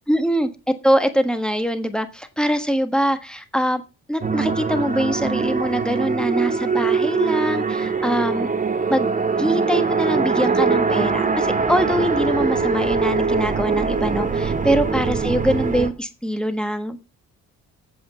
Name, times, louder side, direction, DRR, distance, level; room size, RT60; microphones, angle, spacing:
voice 1, 0.1-3.8 4.1-8.5 8.9-17.1, equal, 5° left, 9 dB, 1.4 m, -23 dB
sound 1, 4.2-15.9, right 5 dB, 25° right, 1.2 m, -22 dB
8.7 x 7.6 x 5.6 m, 0.31 s
cardioid pair, 90°, 30 cm